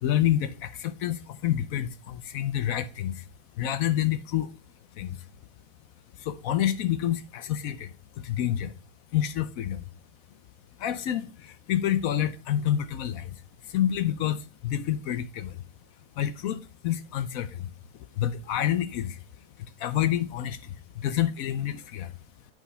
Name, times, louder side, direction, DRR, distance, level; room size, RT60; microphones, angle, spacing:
voice 1, 0.0-3.3 3.6-4.5 4.9-5.2 6.2-7.9 8.2-8.7 9.1-9.8 10.8-15.6 16.2-17.7 18.1-19.2 19.6-22.2, left 11 dB, 70° left, 0.9 m, -28 dB
9.1 x 3.7 x 5.6 m
omnidirectional pair, 1.7 m